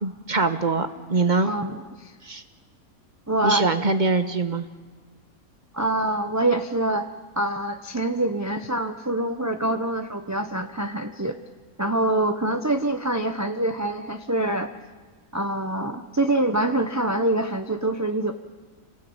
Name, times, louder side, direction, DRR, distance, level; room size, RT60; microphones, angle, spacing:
voice 1, 0.0-1.5 2.2-2.4 3.4-4.7, right 3 dB, 35° right, 9 dB, 1.3 m, -23 dB
voice 2, 1.4-2.1 3.3-3.7 5.7-7.0 7.4-11.3 11.8-14.7 15.3-18.3, right 1 dB, 15° right, 6 dB, 0.8 m, -25 dB
26.5 x 19.5 x 8.8 m, 1.4 s
omnidirectional pair, 1.6 m